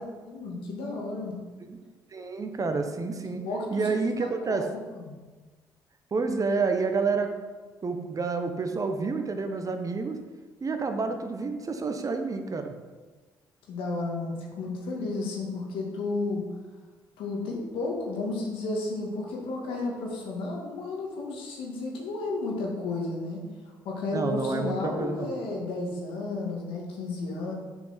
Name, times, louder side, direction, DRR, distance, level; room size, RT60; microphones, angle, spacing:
voice 1, 0.0-1.4 3.4-3.9 4.2-5.2 13.7-16.4 17.2-23.4 23.8-27.5, left 3 dB, 70° left, -1 dB, 2.2 m, -32 dB
voice 2, 2.1-3.4 3.7-4.7 6.1-7.3 7.8-10.2 10.6-12.7 24.1-25.3, right 4 dB, 35° right, 6 dB, 1.2 m, -29 dB
7.7 x 5.9 x 5.9 m, 1.3 s
hypercardioid pair, 50°, 10 cm